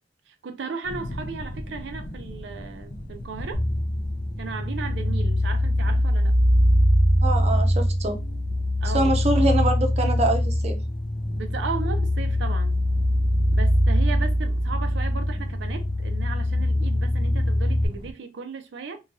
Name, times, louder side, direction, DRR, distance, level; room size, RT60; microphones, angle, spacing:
voice 1, 0.3-3.6 4.4-6.4 8.8-9.2 11.3-12.8 13.5-19.0, right 5 dB, 85° right, 0.5 m, -35 dB
sound 1, 0.8-18.1, left 1 dB, 55° left, 0.6 m, -40 dB
sound 2, 3.5-17.9, left 1 dB, 75° left, 0.9 m, -22 dB
voice 2, 7.2-8.2 8.9-10.8, right 2 dB, 40° right, 0.5 m, -24 dB
2.9 x 2.3 x 2.6 m
head